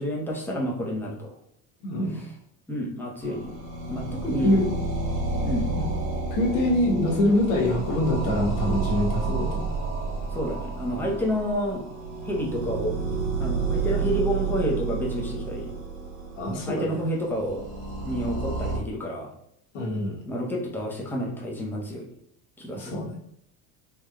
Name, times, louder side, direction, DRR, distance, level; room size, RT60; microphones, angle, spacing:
voice 1, 0.0-1.3 2.1-2.3 2.7-3.6 3.9-4.5 5.4-5.7 10.3-11.9 12.2-13.0 13.4-15.7 16.7-17.6 18.0-19.3 20.3-22.1 22.6-23.0, equal, 5° left, -2 dB, 0.7 m, -29 dB
voice 2, 1.8-2.2 4.4-4.7 5.7-5.9 6.3-9.7 16.4-17.0 19.7-20.2 22.7-23.2, left 1 dB, 75° left, -1 dB, 1.3 m, -24 dB
sound 1, 3.2-18.8, right 4 dB, 65° right, 1.4 m, -30 dB
3.5 x 3.0 x 2.3 m, 0.73 s
supercardioid pair, 115°, 44 cm